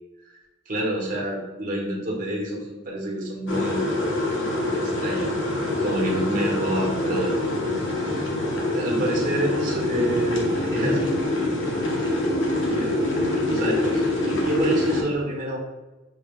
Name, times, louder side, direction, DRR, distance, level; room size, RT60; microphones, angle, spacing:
voice 1, 0.7-4.0 4.7-5.3 5.8-7.3 7.8-8.3 8.7-10.4 10.7-11.1 11.3-11.5 12.6-13.0 13.5-15.6, right 1 dB, 45° right, -2 dB, 1.1 m, -28 dB
sound 1, 3.5-15.0, left 1 dB, 75° left, 1.0 m, -25 dB
6.0 x 2.3 x 3.6 m, 1.1 s
head